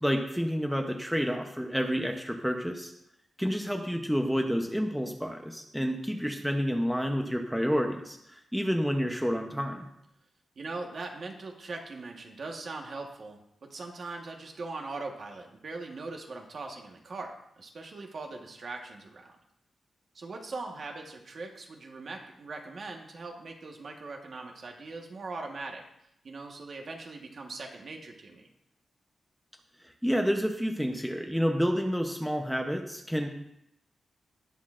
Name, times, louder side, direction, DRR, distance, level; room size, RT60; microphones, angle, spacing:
voice 1, 0.0-2.9 3.4-9.9 29.8-33.3, equal, ahead, 2 dB, 0.7 m, -29 dB
voice 2, 10.6-19.3 20.1-25.8 26.2-28.5, right 3 dB, 45° right, 2 dB, 1.3 m, -41 dB
18.5 x 6.3 x 2.5 m, 0.79 s
wide cardioid pair, 165°, 0 cm